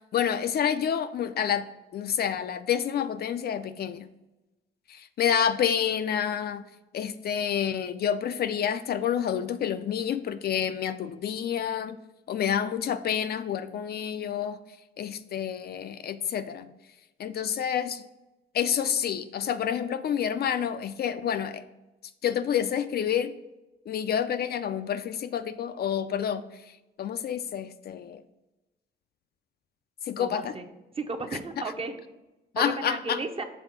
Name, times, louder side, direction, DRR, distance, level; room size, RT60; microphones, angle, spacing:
voice 1, 0.1-1.7 1.9-4.1 4.9-6.6 6.9-12.0 12.3-14.6 15.0-16.7 17.2-18.0 18.5-21.6 22.2-23.3 23.9-26.4 27.0-28.2 30.1-30.5 32.5-33.2, left 8 dB, 55° left, 10 dB, 0.4 m, -28 dB
voice 2, 30.2-30.7 30.9-32.0 32.6-33.4, right 3 dB, 30° right, 5 dB, 0.7 m, -34 dB
6.1 x 3.4 x 5.7 m, 1.0 s
cardioid pair, 90°, 20 cm